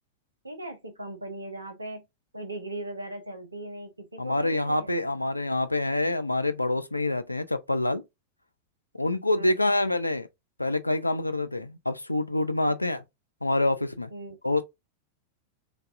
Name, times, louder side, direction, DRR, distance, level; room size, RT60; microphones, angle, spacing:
voice 1, 0.4-2.0 2.3-5.2 9.3-9.6 12.7-12.8 14.1-14.4, right 2 dB, 80° right, 0.5 m, -39 dB
voice 2, 4.2-8.0 8.9-10.3 10.6-13.0 13.4-14.1 14.4-14.6, left 2 dB, 85° left, 0.3 m, -26 dB
3.2 x 2.3 x 2.4 m
figure-of-eight pair, 90°, 0 cm